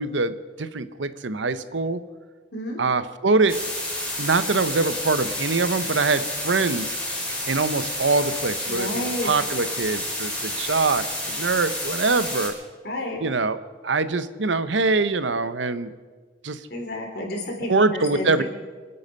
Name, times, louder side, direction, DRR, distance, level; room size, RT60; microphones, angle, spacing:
voice 1, 0.0-2.0 2.8-3.6 4.2-6.9 7.5-12.6 13.2-15.9 16.4-16.6 17.6-18.4, right 3 dB, 85° right, 13 dB, 0.8 m, -24 dB
sound 1, 3.5-12.5, left 1 dB, 5° left, 4.4 m, -30 dB
voice 2, 8.7-9.3 12.8-13.2 16.7-18.4, left 1 dB, 60° left, 1 dB, 3.8 m, -30 dB
27.0 x 9.7 x 5.4 m, 1.5 s
head